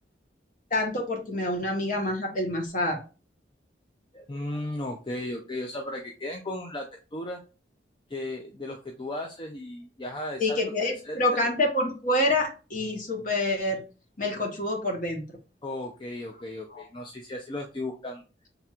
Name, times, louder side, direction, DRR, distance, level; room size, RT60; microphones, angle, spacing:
voice 1, 0.7-3.0 10.4-13.8 14.2-15.4 16.7-16.8, left 1 dB, 45° left, 2 dB, 1.2 m, -27 dB
voice 2, 4.1-7.4 8.1-11.2 15.6-18.2, left 1 dB, 25° left, 2 dB, 0.5 m, -35 dB
5.8 x 3.4 x 2.4 m, 0.33 s
head